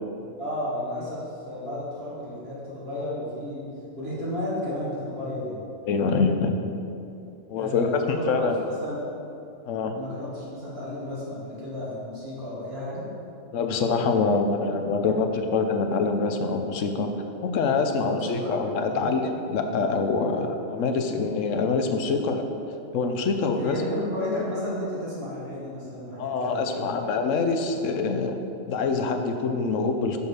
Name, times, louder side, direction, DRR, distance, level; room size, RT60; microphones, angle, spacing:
voice 1, 0.4-3.7 4.0-5.6 7.6-8.4 8.8-9.0 9.9-13.1 17.9-18.5 18.9-19.1 23.5-26.9, left 1 dB, 55° right, -7 dB, 2.3 m, -33 dB
voice 2, 5.8-6.7 7.5-8.6 9.7-10.0 13.5-22.5 22.9-23.8 26.2-28.4 28.7-30.2, left 4 dB, 85° left, 5 dB, 1.1 m, -25 dB
6.6 x 5.5 x 6.2 m, 2.6 s
omnidirectional pair, 1.3 m